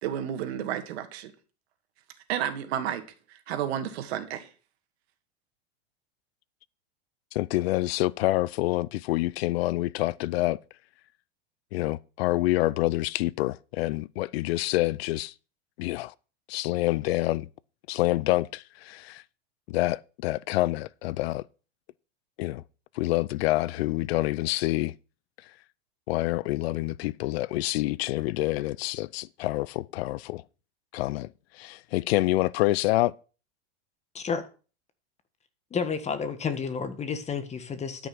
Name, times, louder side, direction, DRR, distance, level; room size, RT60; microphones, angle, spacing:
voice 1, 0.0-1.3 2.3-3.0 3.3-4.5, right 10 dB, 70° right, 2.3 m, -31 dB
voice 2, 7.3-10.6 11.7-15.3 15.8-16.1 16.5-17.5 17.9-19.2 19.7-21.4 22.4-22.6 23.0-24.9 26.1-30.4 30.9-31.3 31.6-33.1, left 18 dB, 65° left, 0.5 m, -27 dB
voice 3, 34.1-34.5 35.7-38.1, left 6 dB, 20° left, 1.5 m, -31 dB
12.5 x 6.2 x 5.9 m
supercardioid pair, 125°, 33 cm